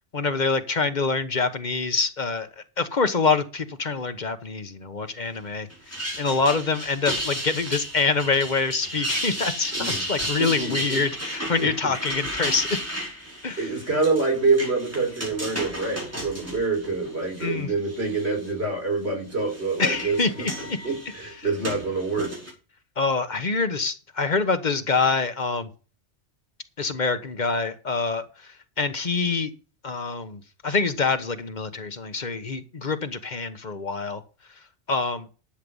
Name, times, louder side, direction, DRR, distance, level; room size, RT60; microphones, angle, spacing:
voice 1, 0.1-12.7 13.4-13.6 17.4-17.7 19.8-20.5 23.0-25.7 26.8-28.2 28.8-29.5 29.8-34.2 34.9-35.3, left 4 dB, 40° left, 10 dB, 1.2 m, -25 dB
sound 1, 5.7-17.5 17.9-18.5 19.3-22.5, equal, 10° right, 4.9 m, -33 dB
voice 2, 9.7-11.0 11.6-11.9 13.6-20.5 20.8-22.3, right 3 dB, 60° right, 3 dB, 4.9 m, -26 dB
11.5 x 7.7 x 5.5 m, 0.35 s
omnidirectional pair, 1.2 m